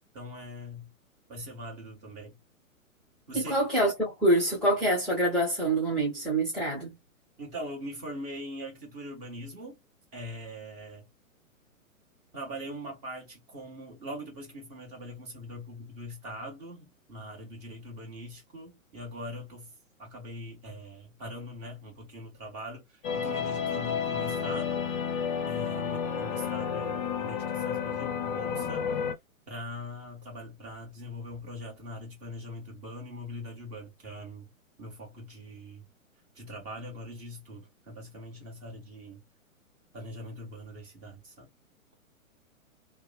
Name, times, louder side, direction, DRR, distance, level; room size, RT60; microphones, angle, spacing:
voice 1, 0.1-0.9 1.3-2.4 3.3-3.6 7.4-9.8 10.1-11.0 12.3-19.7 20.0-22.8 23.1-24.9 25.5-29.1 29.5-34.5 34.8-35.8 36.3-39.2 39.9-41.5, equal, 20° right, 1.2 m, -42 dB
voice 2, 3.3-7.0, right 1 dB, ahead, 0.7 m, -26 dB
sound 1, 23.0-29.1, left 7 dB, 35° left, 0.6 m, -31 dB
2.8 x 2.1 x 2.2 m
figure-of-eight pair, 120°, 42 cm